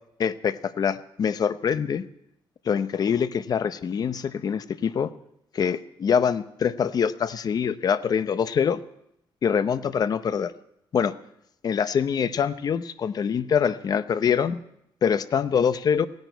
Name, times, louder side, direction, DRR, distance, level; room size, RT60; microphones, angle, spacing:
voice 1, 0.2-2.0 2.7-5.1 5.5-8.8 9.4-10.5 10.9-11.1 11.6-14.6 15.0-16.1, left 7 dB, 45° left, 13 dB, 0.7 m, -24 dB
17.0 x 11.0 x 8.0 m, 0.79 s
cardioid pair, 135°, 9 cm